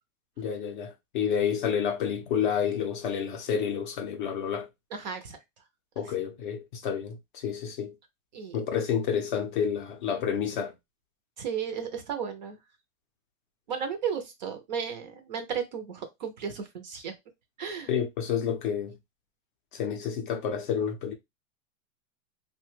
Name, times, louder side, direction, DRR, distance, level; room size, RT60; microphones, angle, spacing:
voice 1, 0.4-4.7 6.0-7.9 8.5-10.7 17.9-19.0 19.7-21.1, left 7 dB, 40° left, 0.4 m, -29 dB
voice 2, 4.9-5.4 8.3-8.6 11.4-12.6 13.7-17.1 17.6-17.9, right 7 dB, 35° right, 0.4 m, -34 dB
3.0 x 2.2 x 3.0 m
supercardioid pair, 160°, 41 cm